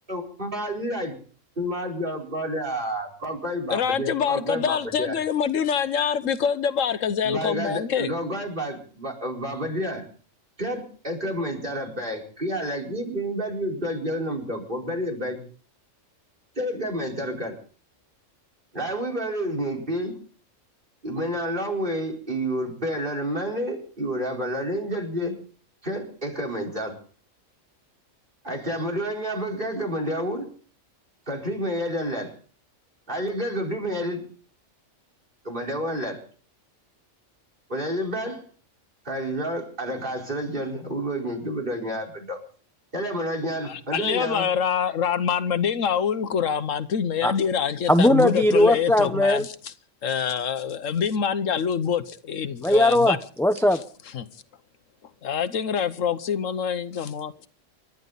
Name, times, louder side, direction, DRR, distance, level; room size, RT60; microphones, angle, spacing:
voice 1, 0.1-1.1 1.6-5.2 7.2-10.0 10.6-15.4 16.6-17.6 18.7-20.2 21.0-25.3 25.8-27.0 28.4-30.5 31.3-32.3 33.1-34.2 35.4-36.2 37.7-38.4 39.0-42.4 42.9-44.5, equal, 40° right, 4.9 m, -29 dB
voice 2, 3.7-8.1 43.7-49.7 50.0-53.2 54.1-54.3 55.2-57.5, left 7 dB, 80° left, 1.3 m, -25 dB
voice 3, 47.9-49.5 52.6-53.8, left 1 dB, 5° left, 0.6 m, -19 dB
29.0 x 12.5 x 4.0 m
omnidirectional pair, 1.3 m